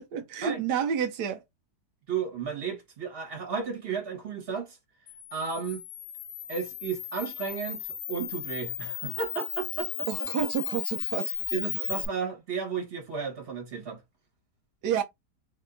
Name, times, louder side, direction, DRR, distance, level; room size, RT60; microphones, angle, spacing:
voice 1, 0.0-1.4 10.1-11.3 14.8-15.0, right 8 dB, 85° right, 1.3 m, -29 dB
voice 2, 2.1-4.8 5.3-5.8 6.5-10.5 11.3-14.0, right 6 dB, 35° right, 1.6 m, -34 dB
Camera, 5.1-12.1, left 11 dB, 70° left, 1.0 m, -35 dB
3.3 x 2.8 x 3.7 m
omnidirectional pair, 1.7 m